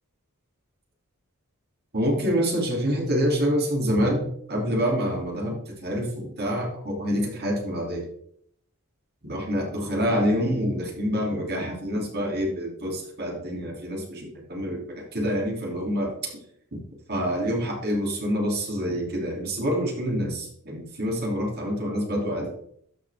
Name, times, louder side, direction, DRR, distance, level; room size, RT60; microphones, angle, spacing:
voice 1, 1.9-8.0 9.2-16.1 16.7-16.8 17.1-22.5, equal, 45° right, -1 dB, 2.8 m, -27 dB
12.5 x 6.0 x 3.5 m, 0.66 s
head